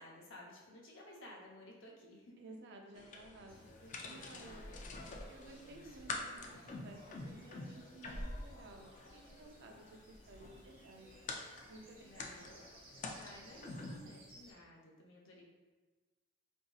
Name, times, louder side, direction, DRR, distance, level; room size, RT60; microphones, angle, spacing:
voice 1, 0.0-2.3 3.0-3.1 3.8-5.2 5.5-6.0 12.0-12.5 13.1-15.5, left 1 dB, 70° left, -2 dB, 0.7 m, -56 dB
voice 2, 2.4-3.6 4.0-4.7 5.3-11.1 11.7-12.5, right 2 dB, 60° right, 2 dB, 0.5 m, -55 dB
sound 1, 3.0-14.0, left 3 dB, 40° left, 0.4 m, -48 dB
sound 2, 3.5-14.5, equal, 80° right, 0.8 m, -54 dB
4.1 x 2.6 x 2.3 m, 1.3 s
head